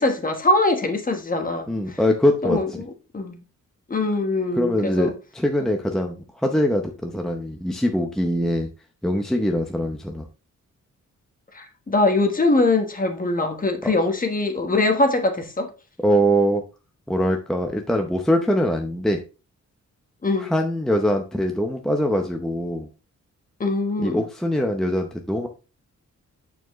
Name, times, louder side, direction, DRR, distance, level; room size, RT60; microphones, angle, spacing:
voice 1, 0.0-2.0 2.4-3.4 3.9-5.1 11.5-15.7 20.2-20.5 23.6-24.2, left 2 dB, 30° left, 1.2 m, -22 dB
voice 2, 1.7-2.6 4.5-8.7 9.0-10.3 13.8-13.9 16.0-16.6 17.1-19.2 20.4-22.9 24.0-25.5, equal, ahead, 0.7 m, -23 dB
8.8 x 4.6 x 3.1 m
wide cardioid pair, 135°, 29 cm